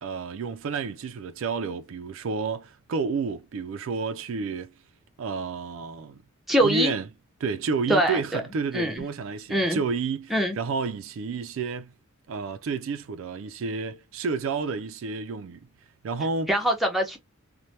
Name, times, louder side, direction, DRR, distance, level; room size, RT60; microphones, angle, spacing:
voice 1, 0.0-4.7 5.2-6.2 6.6-7.1 7.4-11.9 12.3-15.7 16.0-16.5, right 4 dB, 65° right, 0.4 m, -30 dB
voice 2, 6.5-6.9 7.9-8.4 8.7-9.0 9.5-9.8 10.3-10.6 16.5-17.2, right 1 dB, ahead, 0.7 m, -23 dB
3.1 x 2.1 x 2.7 m
head